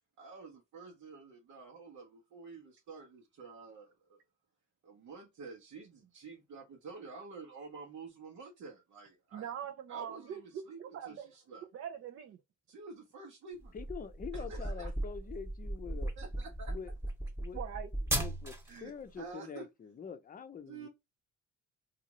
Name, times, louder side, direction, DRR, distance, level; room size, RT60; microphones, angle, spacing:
voice 1, 0.2-4.2 4.8-9.5 9.9-11.7 12.7-13.7 14.3-14.9 16.2-16.8 18.7-19.7 20.7-20.9, right 4 dB, 65° right, 0.9 m, -49 dB
voice 2, 9.3-11.3 11.7-12.4 17.5-17.9, right 9 dB, 50° right, 0.5 m, -42 dB
sound 1, 13.6-18.8, right 1 dB, 10° right, 1.1 m, -37 dB
voice 3, 13.7-16.1 16.7-16.9 17.4-17.6 18.2-18.5 18.8-20.9, left 6 dB, 30° left, 0.6 m, -45 dB
2.6 x 2.5 x 2.9 m
cardioid pair, 90°, 30 cm